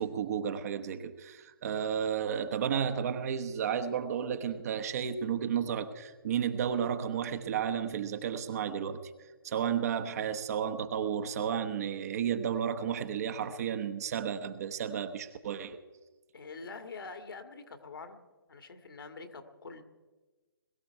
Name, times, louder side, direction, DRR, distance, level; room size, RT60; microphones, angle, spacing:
voice 1, 0.0-9.0 9.4-15.8, right 8 dB, 40° right, 8 dB, 1.2 m, -32 dB
voice 2, 16.3-18.2 18.5-19.8, left 4 dB, 70° left, 7 dB, 2.0 m, -45 dB
21.5 x 13.0 x 4.6 m, 1.3 s
figure-of-eight pair, 140°, 12 cm